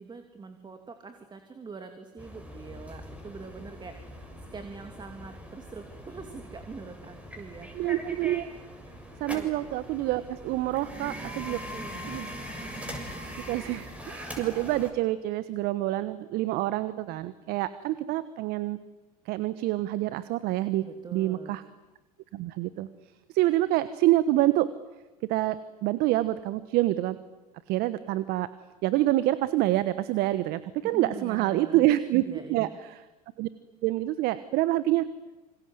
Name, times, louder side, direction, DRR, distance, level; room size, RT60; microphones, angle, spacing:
voice 1, 0.0-7.9 8.9-9.0 9.3-9.7 11.5-12.1 20.8-21.6 30.8-31.8 32.2-32.8, right 4 dB, 25° right, 6 dB, 2.9 m, -44 dB
sound 1, 2.2-14.9, equal, 5° right, 6.8 m, -41 dB
voice 2, 7.7-8.5 9.2-11.6 12.1-12.3 13.5-18.8 19.3-20.8 21.1-21.6 22.3-22.9 23.3-24.7 25.3-27.2 27.7-28.5 28.8-33.0 33.4-33.5 33.8-35.1, right 15 dB, 55° right, 14 dB, 1.2 m, -27 dB
27.5 x 26.0 x 8.0 m, 1.1 s
hypercardioid pair, 80°, 19 cm